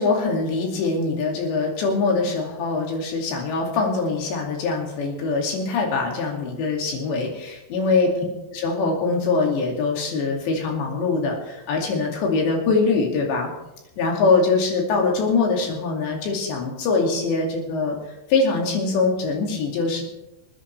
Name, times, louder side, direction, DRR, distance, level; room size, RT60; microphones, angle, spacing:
voice 1, 0.0-8.1 8.5-13.5 14.0-18.0 18.3-20.0, left 4 dB, 75° left, 0 dB, 4.7 m, -23 dB
26.5 x 9.9 x 3.4 m, 0.95 s
omnidirectional pair, 5.1 m